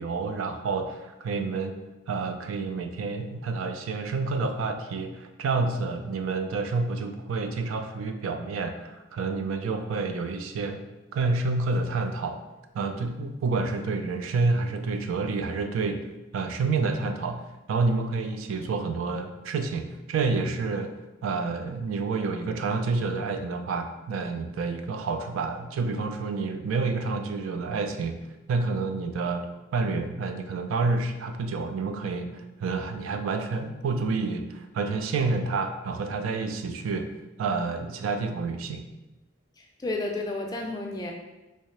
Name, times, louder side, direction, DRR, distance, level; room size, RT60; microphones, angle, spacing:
voice 1, 0.0-1.8 2.1-10.8 11.1-12.4 12.7-16.0 16.3-17.4 17.7-28.2 28.5-37.1 37.4-38.9, right 4 dB, 80° right, 6 dB, 0.3 m, -29 dB
voice 2, 39.6-41.1, left 2 dB, 20° left, 1 dB, 0.3 m, -32 dB
3.2 x 2.7 x 3.1 m, 1.0 s
head